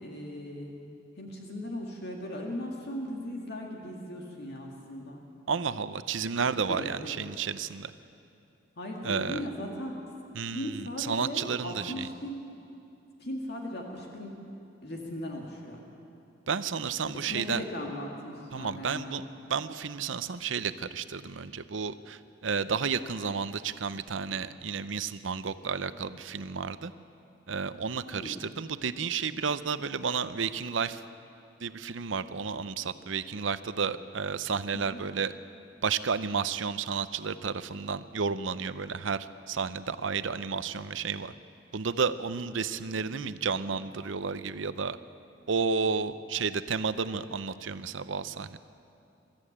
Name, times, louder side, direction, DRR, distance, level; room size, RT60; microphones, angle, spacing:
voice 1, 0.0-0.8 1.2-5.2 6.7-7.2 8.8-10.0 10.5-12.4 13.2-14.4 14.8-15.8 17.3-19.2 28.1-28.4 34.7-35.0 43.1-43.4, left 1 dB, 60° left, 0 dB, 2.2 m, -38 dB
voice 2, 5.5-7.9 9.0-9.4 10.3-12.1 16.5-17.6 18.5-19.2 19.5-26.9 27.5-31.0 31.6-35.3 35.8-41.3 41.7-45.0 45.5-48.6, right 5 dB, 75° right, 13 dB, 0.7 m, -32 dB
24.0 x 13.5 x 8.7 m, 2.7 s
head